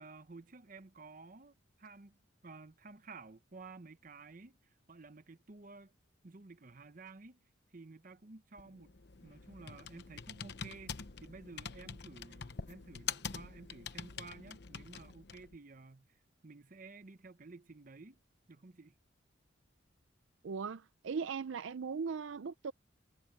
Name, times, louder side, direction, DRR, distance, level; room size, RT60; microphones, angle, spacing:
voice 1, 0.0-6.0 6.2-7.4 7.7-8.9 9.2-18.2 18.5-19.0, right 3 dB, 45° right, 0.8 m, -53 dB
Computer keyboard, 8.6-15.6, left 7 dB, 55° left, 0.9 m, -45 dB
voice 2, 20.4-22.7, right 5 dB, 75° right, 0.5 m, -38 dB
head